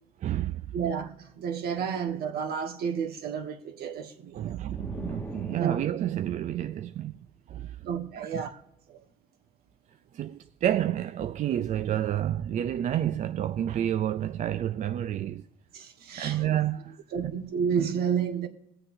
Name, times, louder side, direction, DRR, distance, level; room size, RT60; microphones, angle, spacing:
voice 1, 0.2-0.7 4.3-7.8 8.2-8.6 10.1-15.5 16.2-17.3, right 11 dB, 45° right, 0.4 m, -30 dB
voice 2, 0.7-4.7 5.6-5.8 7.8-8.5 8.9-9.0 15.7-16.4 17.1-18.5, right 7 dB, 65° right, 1.3 m, -31 dB
sound 1, 4.7-6.3, left 1 dB, 10° left, 0.9 m, -41 dB
22.5 x 7.7 x 2.6 m
cardioid pair, 110°, 17 cm